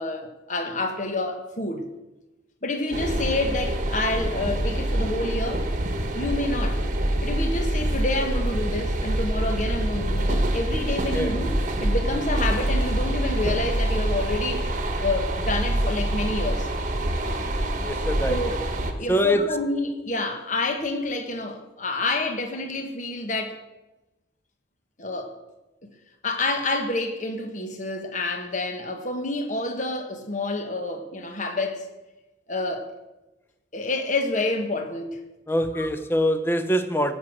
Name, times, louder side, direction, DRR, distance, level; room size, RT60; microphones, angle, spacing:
voice 1, 0.0-1.9 2.6-5.7 6.0-6.8 7.2-16.7 18.3-18.6 19.0-23.6 25.0-25.3 26.2-31.8 32.5-32.9 33.7-35.2 35.7-35.9, left 2 dB, 40° left, 1.3 m, -28 dB
sound 1, 2.9-18.9, right 1 dB, 40° right, 1.1 m, -26 dB
voice 2, 17.8-18.4 19.1-19.4 35.5-37.1, equal, 10° left, 0.7 m, -24 dB
16.5 x 6.4 x 6.5 m
head